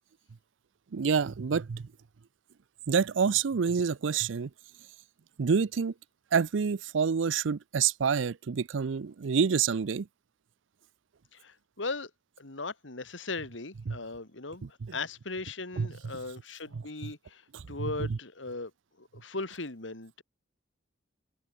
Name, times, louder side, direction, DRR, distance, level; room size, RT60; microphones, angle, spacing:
voice 1, 0.9-1.9 2.9-4.5 5.4-5.9 6.3-10.1 13.9-14.0 14.8-15.0 15.8-15.9 16.7-16.8 17.5-18.2, right 6 dB, 85° right, 0.5 m, -28 dB
voice 2, 11.3-12.1 12.4-18.7 19.0-20.2, left 3 dB, 85° left, 2.4 m, -38 dB
head